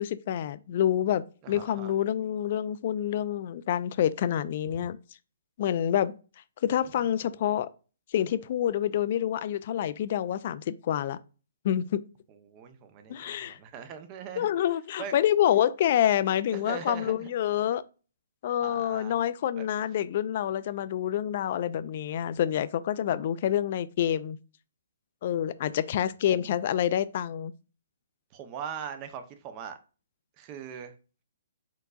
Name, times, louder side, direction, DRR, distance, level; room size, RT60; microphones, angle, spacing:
voice 1, 0.0-5.0 5.6-6.2 6.6-7.7 8.1-11.2 11.6-12.0 13.1-13.6 14.4-17.8 18.4-24.4 25.2-27.5, left 10 dB, 45° left, 0.4 m, -27 dB
voice 2, 1.4-1.9 4.7-4.9 12.4-14.5 15.0-15.1 16.5-17.3 18.6-19.2 19.6-19.7 26.3-26.6 28.3-29.8 30.4-30.9, right 8 dB, 25° right, 0.7 m, -40 dB
4.5 x 3.9 x 2.4 m
hypercardioid pair, 155°, 0 cm